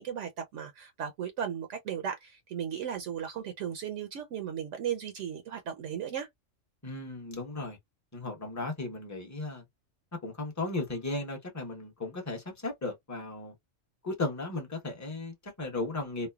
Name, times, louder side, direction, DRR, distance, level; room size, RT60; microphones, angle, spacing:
voice 1, 0.0-6.3, right 8 dB, 70° right, 0.9 m, -36 dB
voice 2, 6.8-7.8 8.1-9.6 10.2-13.5 14.0-16.3, left 2 dB, 15° left, 0.8 m, -35 dB
3.1 x 2.0 x 2.3 m
omnidirectional pair, 1.3 m